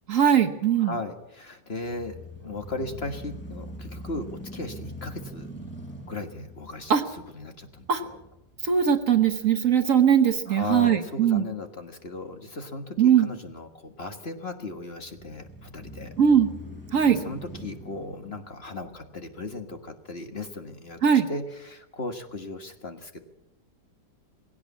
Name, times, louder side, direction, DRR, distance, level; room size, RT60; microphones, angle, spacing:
voice 1, 0.1-0.9 6.9-7.0 7.9-8.0 8.6-11.5 13.0-13.3 16.2-16.5 16.9-17.2 21.0-21.3, right 8 dB, 50° right, 7 dB, 1.4 m, -20 dB
voice 2, 0.8-5.5 6.1-8.2 10.5-16.1 17.1-21.0 21.3-23.2, left 2 dB, 35° left, 7 dB, 1.8 m, -37 dB
sound 1, 1.9-9.9 10.4-10.5 15.0-19.5, right 1 dB, 5° left, 6.1 m, -43 dB
19.5 x 17.0 x 8.4 m, 0.91 s
omnidirectional pair, 1.8 m